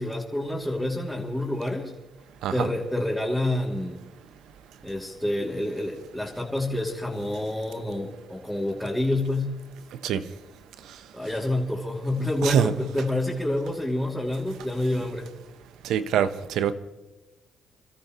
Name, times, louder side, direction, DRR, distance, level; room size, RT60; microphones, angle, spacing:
voice 1, 0.0-1.9 2.5-4.0 4.8-9.6 11.1-15.3, left 1 dB, 5° left, -5 dB, 2.8 m, -28 dB
voice 2, 12.4-12.7 15.8-16.7, right 9 dB, 80° right, 12 dB, 1.0 m, -24 dB
29.0 x 13.5 x 3.1 m, 1.1 s
cardioid pair, 90°, 0 cm